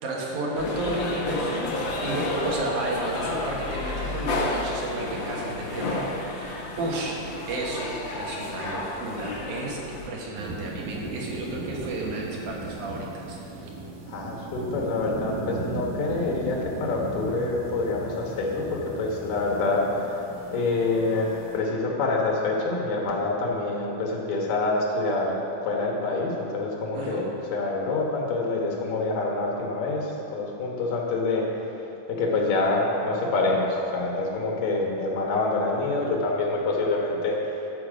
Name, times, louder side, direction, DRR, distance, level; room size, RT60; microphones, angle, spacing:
voice 1, 0.0-1.7 2.0-7.1 7.5-13.7 26.9-27.3, right 2 dB, 70° right, -3 dB, 2.9 m, -32 dB
sound 1, 0.6-10.1, left 2 dB, 60° left, 1.2 m, -31 dB
sound 2, 10.3-21.6, right 2 dB, 85° right, 3.0 m, -37 dB
voice 2, 14.1-20.2 20.5-31.5 32.1-37.6, left 3 dB, 85° left, -1 dB, 3.1 m, -26 dB
11.5 x 7.3 x 5.0 m, 2.9 s
omnidirectional pair, 3.7 m